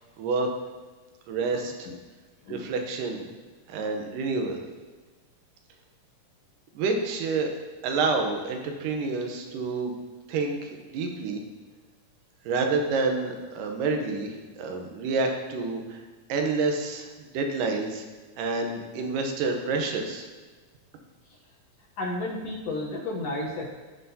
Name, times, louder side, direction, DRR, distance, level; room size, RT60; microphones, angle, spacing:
voice 1, 0.2-0.5 1.3-1.9 2.5-3.2 3.7-4.6 6.8-7.5 7.8-9.9 10.3-11.4 12.5-16.0 16.3-18.0 18.4-20.3, right 3 dB, 90° right, 4 dB, 2.6 m, -28 dB
voice 2, 1.5-2.0 2.4-2.7 3.2-3.3 22.0-23.7, left 2 dB, 65° left, -2 dB, 1.7 m, -33 dB
16.5 x 5.7 x 2.8 m, 1.3 s
omnidirectional pair, 3.7 m